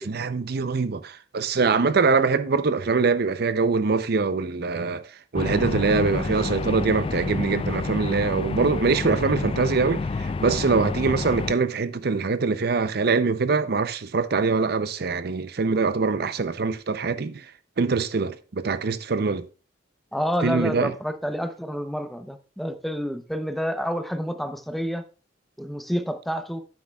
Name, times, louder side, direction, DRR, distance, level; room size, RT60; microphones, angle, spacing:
voice 1, 0.0-5.1 5.3-17.5 17.8-19.5 20.4-20.9, right 4 dB, 55° right, 0.6 m, -23 dB
sound 1, 5.4-11.5, left 3 dB, 30° left, 0.3 m, -29 dB
voice 2, 20.1-25.0 25.6-26.6, equal, ahead, 0.7 m, -29 dB
11.5 x 9.5 x 2.3 m
head